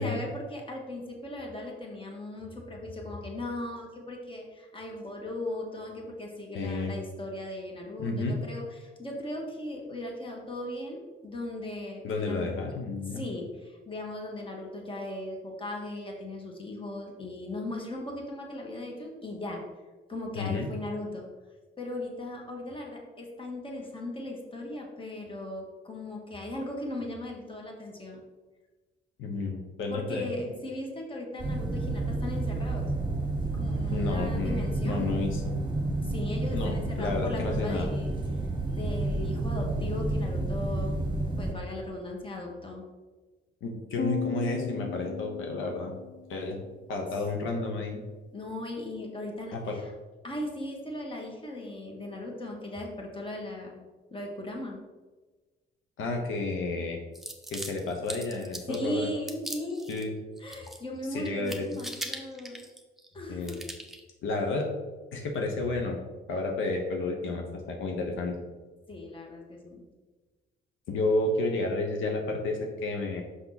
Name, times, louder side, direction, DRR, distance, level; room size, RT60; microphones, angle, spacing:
voice 1, 0.0-12.5 13.1-19.6 20.1-21.3 21.8-28.2 29.9-32.9 33.5-35.1 36.0-38.1 38.6-41.0 41.4-42.8 48.3-49.9 50.2-53.8 54.1-54.8 58.7-59.9 60.4-62.6 63.1-63.6 68.9-69.8, left 1 dB, 25° left, 0 dB, 1.7 m, -38 dB
voice 2, 6.5-7.0 8.0-8.4 12.0-13.2 20.3-20.7 29.2-30.3 33.9-35.5 36.5-37.9 43.6-45.9 46.3-46.6 46.9-48.0 49.5-49.8 56.0-57.0 57.5-59.1 59.9-60.1 61.1-61.7 63.3-63.5 64.2-64.7 65.1-66.0 66.3-68.4 70.9-73.2, left 3 dB, 80° left, 1 dB, 1.1 m, -31 dB
sound 1, 31.4-41.5, right 2 dB, 25° right, 1.2 m, -30 dB
sound 2, 44.0-46.4, left 6 dB, 40° left, 0.8 m, -35 dB
sound 3, 57.1-58.8 59.3-60.0 60.4-61.0 61.2-63.1 63.4-64.0, right 1 dB, ahead, 1.0 m, -40 dB
5.8 x 5.6 x 4.0 m, 1.3 s
cardioid pair, 90°, 20 cm